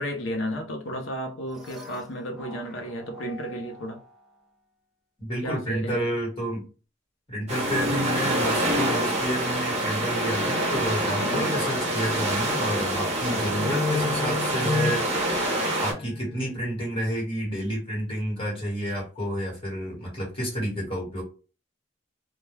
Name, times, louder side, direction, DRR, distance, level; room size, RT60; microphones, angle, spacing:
voice 1, 0.0-4.0 5.4-6.1 11.2-11.5, equal, 75° left, 0.6 m, -33 dB
sound 1, 1.5-4.1 7.5-10.6 13.5-16.7, left 4 dB, 5° right, 0.5 m, -34 dB
voice 2, 5.2-6.7 7.3-15.3 15.8-21.2, equal, 30° left, 1.3 m, -30 dB
sound 2, 7.5-15.9, right 1 dB, 35° right, 0.8 m, -26 dB
2.2 x 2.2 x 3.1 m
head